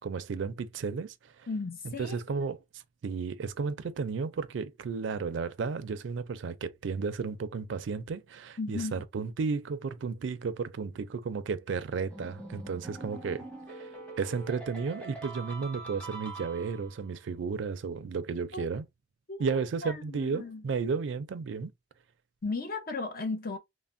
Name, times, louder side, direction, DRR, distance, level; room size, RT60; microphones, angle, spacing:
voice 1, 0.0-1.5 1.8-2.6 3.0-13.4 13.8-13.9 14.2-18.8 19.4-21.7, right 5 dB, 70° right, 0.4 m, -33 dB
voice 2, 1.5-2.5 8.6-8.9 18.5-18.7 19.3-20.6 22.4-23.6, left 3 dB, 50° left, 0.6 m, -36 dB
sound 1, 12.1-17.0, right 3 dB, 5° left, 0.9 m, -44 dB
3.2 x 2.0 x 2.5 m
head